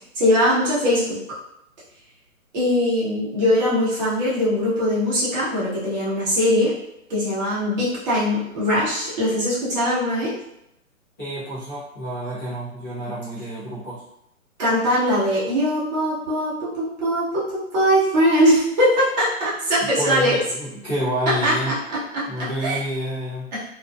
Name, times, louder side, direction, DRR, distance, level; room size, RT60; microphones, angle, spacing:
voice 1, 0.1-1.2 2.5-6.7 7.1-10.3 14.6-20.4 21.4-21.7 22.1-22.2 22.6-22.8 23.5-23.6, equal, 30° right, -8 dB, 1.0 m, -21 dB
voice 2, 11.2-14.0 19.8-21.8 22.3-23.5, equal, 10° left, -17 dB, 0.5 m, -29 dB
2.5 x 2.4 x 2.2 m, 0.81 s
hypercardioid pair, 140°, 43 cm